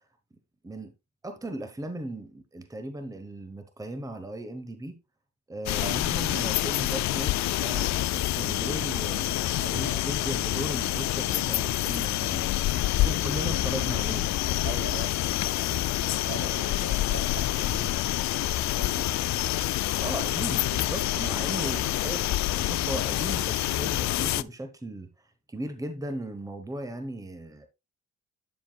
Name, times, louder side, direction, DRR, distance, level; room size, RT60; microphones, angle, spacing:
voice 1, 1.2-5.0 5.5-9.4 9.7-12.6 12.9-14.4 20.0-25.1 25.5-27.7, right 1 dB, 10° right, 1.1 m, -37 dB
sound 1, 5.7-24.4, left 15 dB, 65° left, 0.4 m, -27 dB
voice 2, 9.6-10.0 12.9-13.6 14.6-15.1 15.7-18.1 18.5-19.3, right 5 dB, 45° right, 1.4 m, -41 dB
9.4 x 7.3 x 2.3 m
cardioid pair, 90°, 30 cm